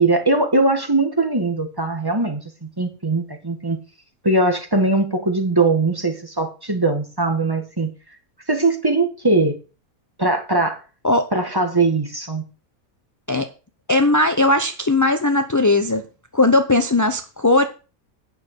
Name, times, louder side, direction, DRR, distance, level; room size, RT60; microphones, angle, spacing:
voice 1, 0.0-3.8 4.2-7.9 8.5-9.6 10.2-10.8 11.3-12.4, right 2 dB, 15° right, 6 dB, 1.6 m, -20 dB
voice 2, 13.9-16.0 16.3-17.7, left 2 dB, 20° left, 7 dB, 0.5 m, -18 dB
9.3 x 6.5 x 6.7 m, 0.33 s
omnidirectional pair, 1.6 m